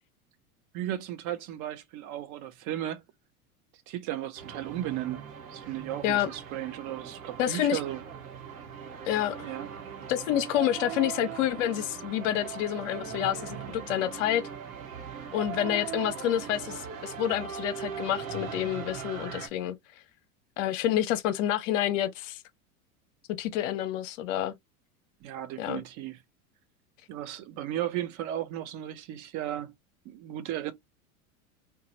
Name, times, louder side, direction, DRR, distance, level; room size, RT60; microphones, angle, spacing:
voice 1, 0.7-3.0 3.9-8.0 9.4-9.7 25.2-26.2 27.1-29.7 30.0-30.7, right 12 dB, 45° right, 0.7 m, -35 dB
sound 1, 4.4-19.5, right 8 dB, 75° right, 1.1 m, -40 dB
voice 2, 7.4-7.8 9.1-9.5 10.1-14.4 15.3-19.8 20.6-22.4 23.4-24.5 25.6-25.8, left 11 dB, 60° left, 0.6 m, -28 dB
2.9 x 2.3 x 2.8 m
hypercardioid pair, 85°, 43 cm